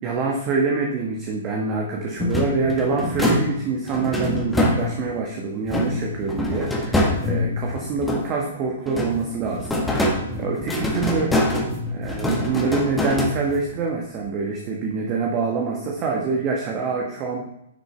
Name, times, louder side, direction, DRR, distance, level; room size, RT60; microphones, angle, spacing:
voice 1, 0.0-11.3 11.9-17.4, right 4 dB, 30° right, 0 dB, 1.4 m, -26 dB
sound 1, 2.2-5.2 5.7-8.5 8.9-13.8, left 1 dB, 5° left, 1.5 m, -25 dB
9.9 x 7.2 x 3.4 m, 0.80 s
figure-of-eight pair, 115°, 0 cm